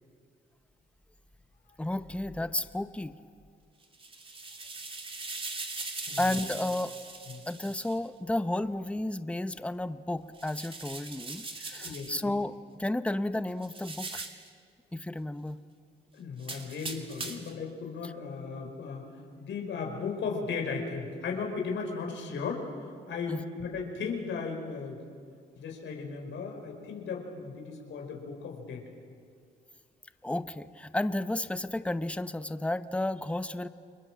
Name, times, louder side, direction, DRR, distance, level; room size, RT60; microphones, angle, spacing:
voice 1, 1.8-3.2 6.2-7.0 7.5-14.3 14.9-15.6 18.0-18.1 23.3-23.4 30.2-33.7, left 1 dB, 5° left, 12 dB, 0.9 m, -32 dB
sound 1, 3.8-8.0 10.3-12.2 13.6-14.5 16.4-17.6, right 3 dB, 25° right, 2.8 m, -40 dB
voice 2, 6.1-6.4 7.3-7.4 11.7-12.4 16.1-19.1 19.4-25.0 25.6-28.8, left 5 dB, 70° left, 2 dB, 5.0 m, -36 dB
29.5 x 22.5 x 7.6 m, 2.3 s
cardioid pair, 90°, 20 cm